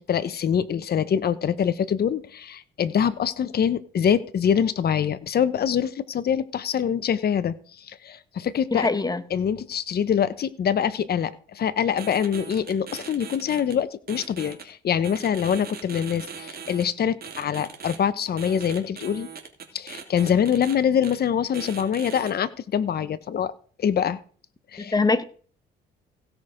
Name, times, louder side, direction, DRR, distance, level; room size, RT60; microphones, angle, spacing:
voice 1, 0.0-8.9 9.3-19.3 19.7-23.5 23.8-24.2 24.7-24.9, left 8 dB, 50° left, 0.9 m, -24 dB
voice 2, 8.7-9.2 24.9-25.2, left 3 dB, 20° left, 1.0 m, -22 dB
sound 1, 12.0-13.7 14.1-14.6 15.0-16.8 17.2-18.0 18.4-20.7 21.0-21.1 21.5-22.3, right 6 dB, 50° right, 2.7 m, -39 dB
16.5 x 6.1 x 5.0 m
cardioid pair, 90°, 20 cm